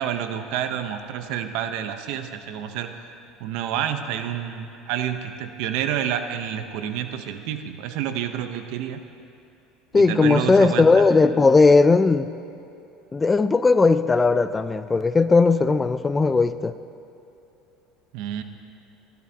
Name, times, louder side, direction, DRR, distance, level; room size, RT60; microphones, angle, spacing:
voice 1, 0.0-3.0 3.4-9.0 9.9-11.0 18.1-18.4, right 9 dB, 70° right, 8 dB, 0.8 m, -29 dB
voice 2, 9.9-12.3 13.1-16.7, left 3 dB, 15° left, 13 dB, 0.4 m, -17 dB
21.5 x 12.0 x 2.8 m, 2.7 s
supercardioid pair, 125°, 0 cm